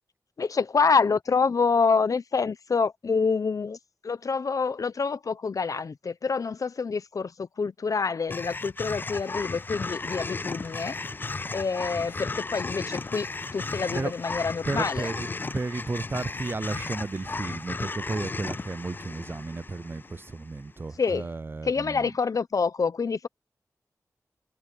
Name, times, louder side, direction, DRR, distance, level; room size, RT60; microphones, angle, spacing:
voice 1, 0.4-3.8 4.0-11.0 11.5-13.3 13.5-15.1 21.0-21.3 21.6-23.3, left 5 dB, 65° left, 0.8 m, -27 dB
sound 1, 8.3-20.6, left 3 dB, 30° left, 0.3 m, -35 dB
voice 2, 14.7-22.1, right 3 dB, 35° right, 0.5 m, -33 dB
wide cardioid pair, 70°, 6 cm